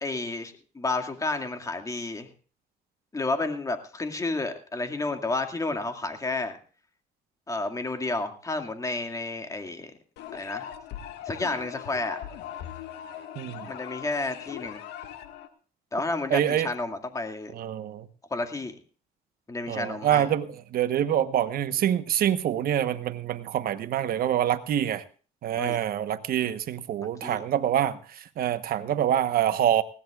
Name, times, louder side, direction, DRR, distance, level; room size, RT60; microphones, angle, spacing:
voice 1, 0.0-2.3 3.1-6.6 7.5-9.9 10.3-10.7 11.3-12.2 13.6-14.8 15.9-17.5 18.3-18.7 19.5-20.3 25.6-25.8 27.2-27.4, left 2 dB, 20° left, 6 dB, 2.2 m, -31 dB
sound 1, 10.2-15.5, left 10 dB, 85° left, 1.9 m, -40 dB
voice 2, 13.3-13.7 16.3-16.7 17.5-18.1 19.7-25.0 25.4-29.8, right 10 dB, 60° right, 11 dB, 1.2 m, -26 dB
20.0 x 17.5 x 2.5 m, 0.39 s
cardioid pair, 110°, 17 cm